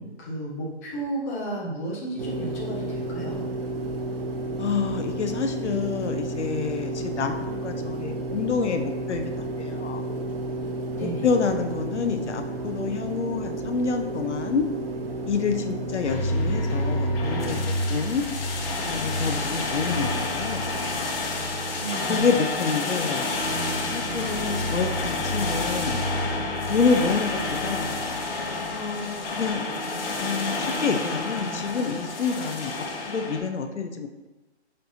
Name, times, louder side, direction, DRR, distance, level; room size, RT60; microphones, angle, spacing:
voice 1, 0.0-3.4 10.9-11.3 16.2-16.3 21.8-22.3, right 1 dB, 15° left, -5 dB, 0.5 m, -33 dB
sound 1, 2.2-17.6, right 2 dB, 55° right, 0.7 m, -32 dB
voice 2, 4.6-10.0 11.0-14.7 15.3-17.6 17.9-18.2 18.8-20.7 22.1-26.0 26.7-28.0 28.7-29.6 30.2-34.1, left 5 dB, 75° left, 6 dB, 0.6 m, -28 dB
sound 2, 16.0-33.4, left 2 dB, 55° left, 1.0 m, -28 dB
5.7 x 3.2 x 2.7 m, 1.1 s
figure-of-eight pair, 140°, 35 cm